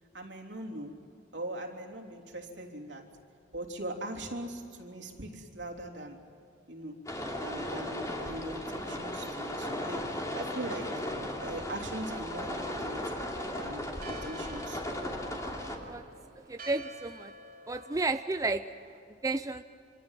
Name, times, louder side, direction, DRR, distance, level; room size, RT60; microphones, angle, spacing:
voice 1, 0.1-1.0 1.3-3.1 3.5-6.2 6.7-7.1 7.4-13.1 13.5-14.8 15.8-15.9, right 1 dB, 70° right, 2 dB, 3.5 m, -41 dB
sound 1, 7.1-15.8, left 1 dB, 20° left, 3.1 m, -36 dB
Church bell, 12.3-19.0, right 1 dB, 50° right, 2.9 m, -50 dB
voice 2, 16.5-17.3 17.7-18.6 19.2-19.6, right 3 dB, 20° right, 9 dB, 0.6 m, -31 dB
26.5 x 26.0 x 7.4 m, 2.7 s
head